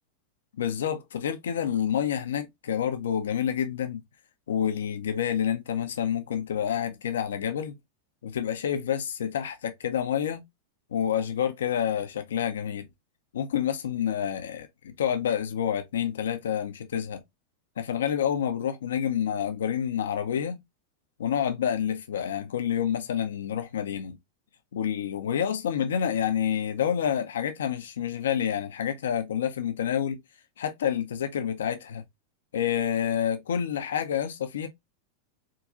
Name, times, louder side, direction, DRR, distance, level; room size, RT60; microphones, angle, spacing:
voice 1, 0.6-4.0 4.5-7.8 8.2-10.4 10.9-12.9 13.3-17.2 17.8-20.6 21.2-24.2 24.7-30.2 30.6-32.0 32.5-34.7, left 9 dB, 85° left, 0.6 m, -28 dB
3.6 x 2.3 x 2.9 m
hypercardioid pair, 110°, 0 cm